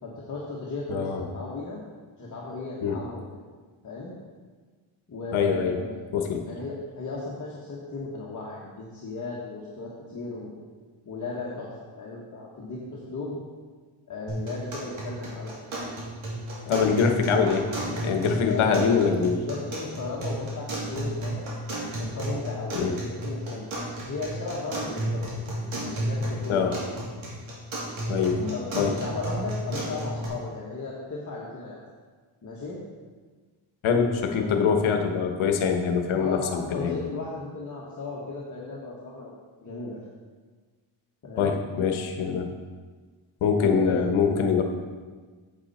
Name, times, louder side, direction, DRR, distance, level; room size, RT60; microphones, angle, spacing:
voice 1, 0.0-1.8 2.2-3.4 3.8-4.1 5.1-6.0 6.4-10.5 11.0-13.4 14.1-15.5 16.6-16.9 18.5-19.1 19.5-21.5 21.9-23.6 24.1-25.2 25.9-26.8 28.3-31.8 32.4-32.8 34.2-34.7 36.2-39.3 39.6-40.0 41.2-41.6 43.6-44.2, left 3 dB, 40° left, -5 dB, 1.5 m, -35 dB
voice 2, 0.9-1.2 2.8-3.0 5.3-5.8 6.1-6.5 16.7-19.4 22.7-22.9 26.5-26.7 28.1-28.4 28.7-28.9 33.8-37.0 41.4-42.5 43.4-44.6, left 6 dB, 80° left, 5 dB, 1.2 m, -24 dB
sound 1, 14.3-30.3, right 1 dB, 70° right, 2.9 m, -33 dB
8.8 x 7.7 x 4.3 m, 1.4 s
cardioid pair, 110°, 48 cm